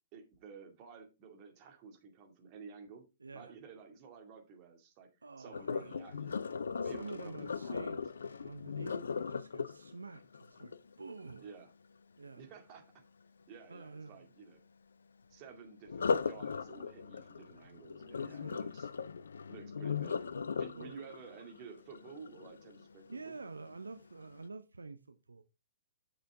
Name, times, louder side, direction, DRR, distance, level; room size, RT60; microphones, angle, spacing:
voice 1, 0.1-3.1 3.3-5.1 5.4-6.4 6.8-8.0 11.4-11.7 12.4-12.8 13.5-14.6 15.3-18.9 19.5-23.3, right 5 dB, 35° right, 2.2 m, -52 dB
voice 2, 3.2-3.5 5.2-6.0 6.8-11.5 12.2-12.5 13.7-14.3 18.2-18.8 20.7-21.0 23.1-25.4, right 4 dB, 75° right, 0.6 m, -48 dB
Sink (filling or washing), 5.5-11.5 15.9-22.9 23.4-23.7 24.2-24.3, left 5 dB, 70° left, 0.4 m, -38 dB
7.9 x 6.7 x 3.5 m
figure-of-eight pair, 115°, 0 cm